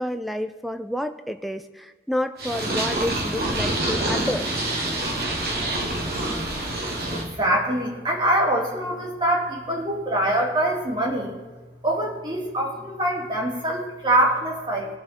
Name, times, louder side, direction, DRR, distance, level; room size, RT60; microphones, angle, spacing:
voice 1, 0.0-4.7, left 1 dB, ahead, 9 dB, 0.6 m, -29 dB
Purr, 2.4-7.2, right 1 dB, 55° right, 2.6 m, -26 dB
voice 2, 7.1-11.3 11.8-14.9, right 1 dB, 25° right, -1 dB, 2.9 m, -24 dB
20.5 x 7.1 x 4.4 m, 1.3 s
head